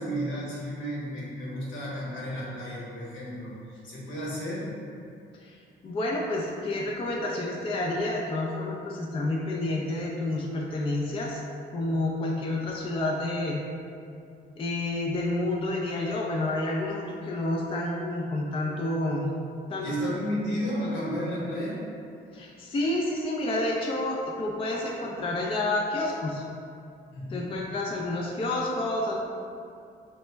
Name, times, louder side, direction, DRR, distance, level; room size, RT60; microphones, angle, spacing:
voice 1, 0.0-4.6 19.8-21.8 27.1-27.5, equal, 75° left, -6 dB, 1.0 m, -32 dB
voice 2, 5.8-11.4 11.7-13.6 14.6-19.3 19.7-20.1 22.3-26.4 27.3-29.2, left 2 dB, 25° left, -2 dB, 0.3 m, -29 dB
3.1 x 2.0 x 3.3 m, 2.4 s
cardioid pair, 90°, 20 cm